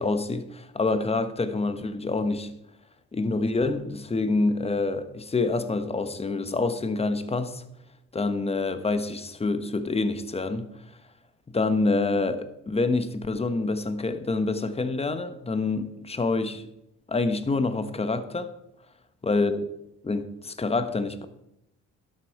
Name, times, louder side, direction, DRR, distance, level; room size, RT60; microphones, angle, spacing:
voice 1, 0.0-2.5 3.1-7.6 8.1-10.7 11.5-16.7 17.1-18.5 19.2-19.6 20.0-21.2, left 3 dB, 20° left, 1.1 m, -27 dB
11.5 x 8.4 x 4.6 m
cardioid pair, 90°, 30 cm